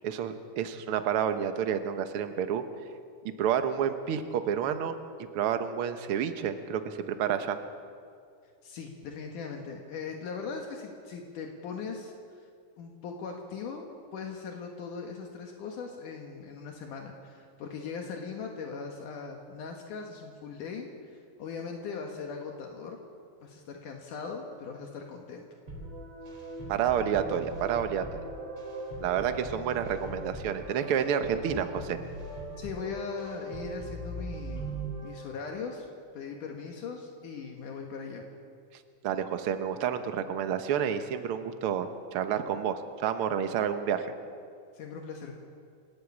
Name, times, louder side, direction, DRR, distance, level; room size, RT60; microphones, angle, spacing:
voice 1, 0.0-2.6 3.4-5.0 5.3-7.6 26.7-28.1 29.0-32.0 39.0-44.1, right 8 dB, 60° right, 8 dB, 1.5 m, -29 dB
voice 2, 8.6-12.5 12.8-23.0 23.4-25.4 32.6-35.9 36.1-38.2 44.7-45.4, left 5 dB, 75° left, 2 dB, 3.0 m, -40 dB
sound 1, 25.7-35.8, right 2 dB, 35° right, 4.4 m, -40 dB
29.0 x 11.5 x 8.6 m, 2.3 s
omnidirectional pair, 3.7 m